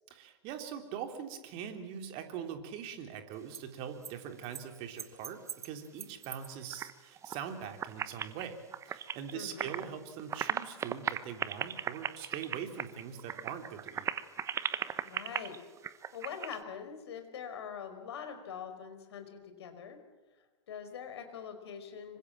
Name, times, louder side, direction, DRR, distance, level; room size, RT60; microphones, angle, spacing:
voice 1, 0.1-14.1, right 8 dB, 40° right, 6 dB, 3.3 m, -42 dB
sound 1, 3.3-3.6 4.0-4.1 4.4-4.6 5.0-6.9 7.2-7.5 7.8-9.9 10.2-16.6, right 8 dB, 20° right, 1.1 m, -38 dB
voice 2, 9.3-9.7 15.0-15.6 16.1-20.0 20.7-22.2, left 7 dB, 60° left, 7 dB, 4.9 m, -43 dB
26.0 x 24.5 x 7.5 m, 1.2 s
figure-of-eight pair, 100°, 15 cm